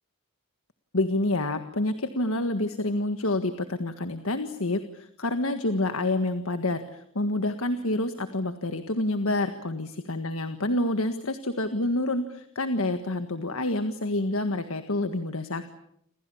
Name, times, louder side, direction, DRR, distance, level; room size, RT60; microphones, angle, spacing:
voice 1, 0.9-15.7, left 2 dB, 70° left, 8 dB, 1.7 m, -28 dB
29.5 x 26.5 x 7.1 m, 0.71 s
head